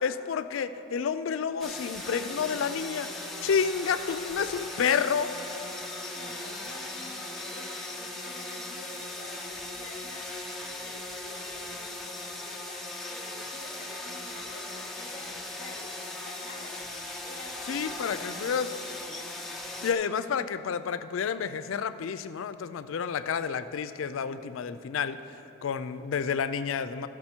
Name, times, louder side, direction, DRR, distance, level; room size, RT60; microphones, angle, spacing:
voice 1, 0.0-5.3 17.7-18.7 19.8-25.2 25.6-27.1, left 6 dB, 85° left, 12 dB, 0.4 m, -30 dB
sound 1, 1.6-19.9, left 2 dB, ahead, 0.7 m, -38 dB
voice 2, 6.1-9.4 9.7-10.3 10.6-15.9 16.2-16.8 17.2-18.1 18.4-18.5 20.2-20.4, left 2 dB, 45° left, -4 dB, 1.0 m, -49 dB
13.5 x 6.1 x 4.4 m, 2.8 s
head